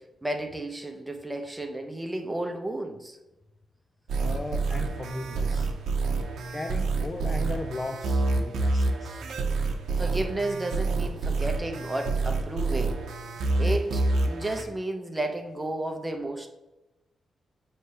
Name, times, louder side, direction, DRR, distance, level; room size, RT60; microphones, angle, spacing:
voice 1, 0.2-3.2 10.0-13.1 13.6-16.5, right 1 dB, 10° right, 4 dB, 0.7 m, -32 dB
sound 1, 4.1-14.6, right 3 dB, 75° right, 0.8 m, -27 dB
voice 2, 4.2-5.7 6.5-9.2, left 2 dB, 20° left, 6 dB, 0.3 m, -36 dB
6.5 x 3.2 x 5.5 m, 1.0 s
wide cardioid pair, 165°, 0 cm